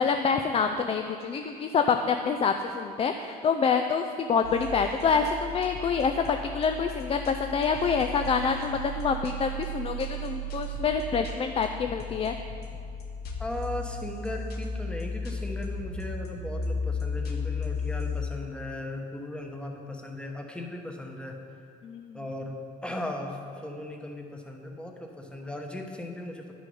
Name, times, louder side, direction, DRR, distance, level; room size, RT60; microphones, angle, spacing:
voice 1, 0.0-12.3 21.8-22.2, left 5 dB, 35° left, 6 dB, 0.4 m, -26 dB
sound 1, 4.4-18.3, left 2 dB, 70° left, 1.2 m, -35 dB
voice 2, 13.4-21.4 22.1-26.5, left 1 dB, 5° left, 2 dB, 1.0 m, -37 dB
10.0 x 6.3 x 5.4 m, 2.4 s
cardioid pair, 110°, 17 cm